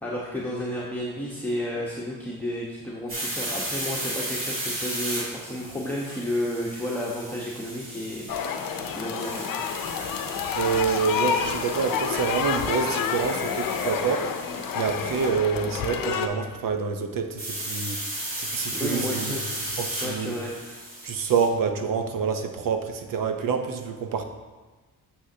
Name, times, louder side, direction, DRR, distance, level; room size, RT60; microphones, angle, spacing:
voice 1, 0.0-8.4 8.9-9.5 18.7-19.4 20.0-20.5, left 1 dB, 5° left, -6 dB, 1.1 m, -31 dB
sound 1, 3.1-15.3 17.4-21.5, right 1 dB, 35° right, 2.4 m, -35 dB
sound 2, 8.3-16.3, left 7 dB, 70° left, 0.7 m, -29 dB
voice 2, 10.5-14.3 14.7-19.4 19.8-20.4 21.0-24.3, right 6 dB, 65° right, 6 dB, 0.9 m, -27 dB
9.6 x 6.4 x 2.8 m, 1.3 s
cardioid pair, 100°, 35 cm